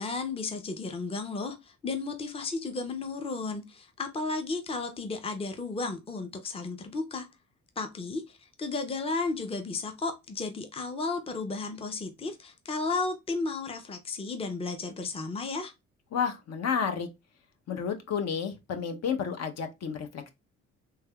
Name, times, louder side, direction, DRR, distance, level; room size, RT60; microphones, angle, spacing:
voice 1, 0.0-7.3 7.8-15.7, left 3 dB, 20° left, 0.6 m, -33 dB
voice 2, 16.1-17.1 17.7-20.3, left 7 dB, 60° left, 0.8 m, -31 dB
3.2 x 3.2 x 2.3 m
cardioid pair, 90°, 30 cm